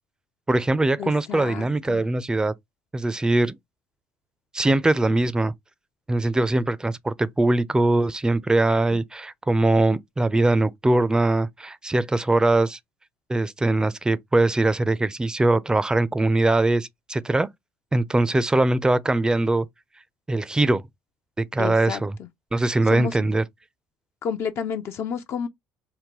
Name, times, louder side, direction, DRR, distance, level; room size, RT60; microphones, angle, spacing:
voice 1, 0.5-2.5 2.9-3.6 4.5-5.5 6.1-12.8 13.3-17.5 17.9-19.7 20.3-20.8 21.4-22.2 22.5-23.4, right 2 dB, 15° right, 0.4 m, -21 dB
voice 2, 1.0-2.0 8.9-9.0 21.6-22.0 22.9-23.2 24.2-25.5, left 7 dB, 55° left, 0.5 m, -30 dB
3.7 x 2.2 x 2.9 m
hypercardioid pair, 70°, 5 cm